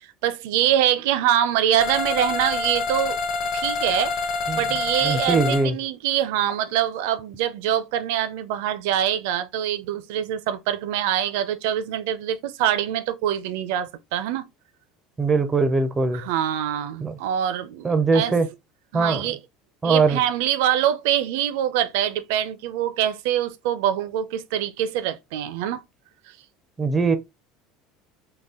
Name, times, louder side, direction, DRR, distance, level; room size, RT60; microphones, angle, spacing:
voice 1, 0.2-3.2 3.5-4.2 4.5-14.5 16.1-18.4 18.9-19.4 19.8-25.8, right 11 dB, 75° right, 0.5 m, -24 dB
sound 1, 1.8-5.6, left 4 dB, 35° left, 0.7 m, -27 dB
voice 2, 5.0-5.8 15.2-16.2 17.0-17.1 17.8-18.5 18.9-19.2 19.8-20.2 26.8-27.2, right 4 dB, 15° right, 0.4 m, -21 dB
3.9 x 2.2 x 3.6 m
cardioid pair, 170°, 0 cm